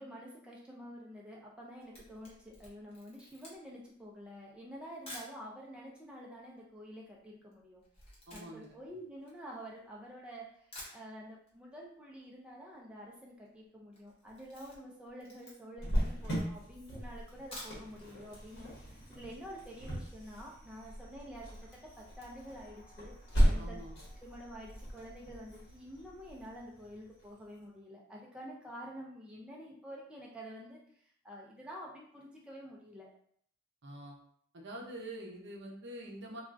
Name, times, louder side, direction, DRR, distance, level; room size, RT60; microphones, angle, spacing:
voice 1, 0.0-7.8 8.3-21.5 22.0-23.8 24.2-33.1 34.8-34.9, equal, 5° right, -3 dB, 0.4 m, -49 dB
Camera, 1.7-5.4 6.1-6.2 6.4-10.0 10.4-10.5 10.7-11.6 11.8-11.9 12.2-12.3 12.5-12.9 13.3-13.5 13.9-15.9 16.4-16.5 17.3-18.1 18.4-18.5 18.9-19.0, left 1 dB, 30° left, 1.0 m, -51 dB
voice 2, 8.3-8.8 23.6-23.9 33.8-34.2 34.5-36.4, right 1 dB, 60° right, -1 dB, 0.7 m, -45 dB
Cricket, 15.8-27.2, equal, 60° left, 1.0 m, -36 dB
3.3 x 2.3 x 2.5 m, 0.63 s
head